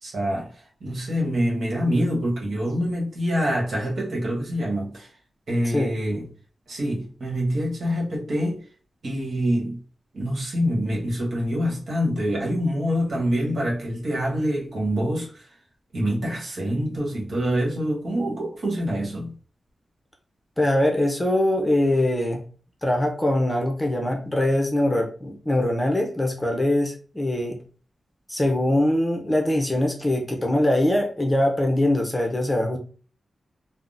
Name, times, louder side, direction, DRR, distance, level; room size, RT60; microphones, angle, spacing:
voice 1, 0.0-0.5 0.8-5.1 5.5-6.2 6.7-8.6 9.0-9.8 10.1-15.4 15.9-19.4, equal, 70° right, 1.2 m, -25 dB
voice 2, 20.6-22.4 22.8-27.6 28.3-32.8, left 1 dB, 15° left, 0.6 m, -22 dB
3.5 x 2.1 x 2.5 m
wide cardioid pair, 105°, 0 cm